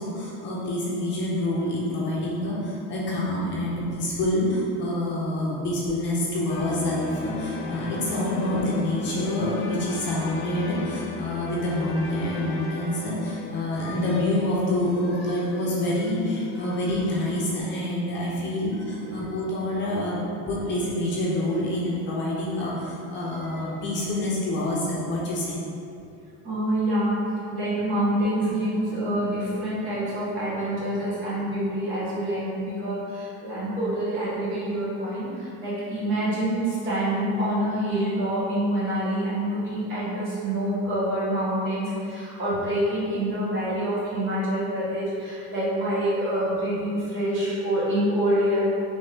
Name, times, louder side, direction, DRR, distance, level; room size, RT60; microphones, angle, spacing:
voice 1, 0.0-25.6, left 1 dB, 40° left, -5 dB, 0.7 m, -27 dB
sound 1, 6.5-17.6, left 4 dB, 90° left, 0.6 m, -37 dB
voice 2, 26.4-27.2 27.5-48.6, right 1 dB, 40° right, -9 dB, 1.5 m, -26 dB
4.1 x 3.3 x 3.4 m, 2.6 s
cardioid pair, 170°, 30 cm